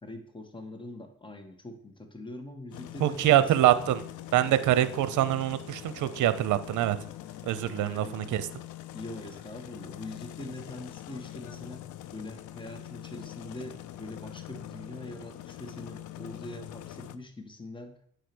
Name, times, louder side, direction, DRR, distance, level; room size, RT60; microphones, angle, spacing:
voice 1, 0.0-3.8 7.9-8.3 8.9-18.0, left 1 dB, 15° left, 5 dB, 1.6 m, -43 dB
sound 1, 2.7-17.2, left 13 dB, 80° left, 0.6 m, -44 dB
voice 2, 3.0-4.0 4.3-7.0 7.4-8.5, right 13 dB, 80° right, 13 dB, 0.7 m, -24 dB
8.5 x 4.9 x 6.1 m, 0.62 s
cardioid pair, 90°, 30 cm